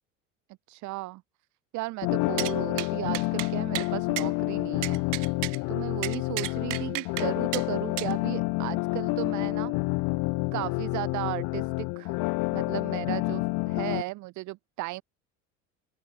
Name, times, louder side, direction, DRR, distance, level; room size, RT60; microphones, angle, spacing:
voice 1, 0.7-1.2 1.7-5.0 5.7-9.8 10.5-12.1 12.5-15.0, right 20 dB, 50° right, 1.0 m, -35 dB
sound 1, 2.0-14.0, left 27 dB, 60° left, 1.4 m, -29 dB
sound 2, 2.4-2.5 2.8-2.9 3.1-3.5 3.7-3.9 4.2-4.3 4.8-5.6 6.0-7.3 7.5-7.6 8.0-8.1, right 20 dB, 70° right, 3.3 m, -33 dB
open air
hypercardioid pair, 70°, 37 cm